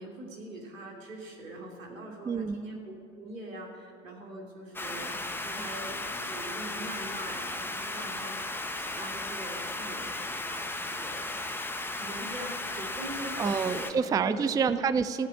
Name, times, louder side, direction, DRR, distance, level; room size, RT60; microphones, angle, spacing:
voice 1, 0.0-2.8 3.1-8.4 8.7-11.3 12.0-13.9 14.2-14.6, right 1 dB, 90° right, 0 dB, 2.9 m, -43 dB
voice 2, 2.3-2.6 13.4-15.3, right 6 dB, 10° right, 13 dB, 0.4 m, -27 dB
sound 1, 4.7-13.9, left 2 dB, 5° left, 1.0 m, -35 dB
14.5 x 8.3 x 9.6 m, 2.3 s
hypercardioid pair, 80°, 39 cm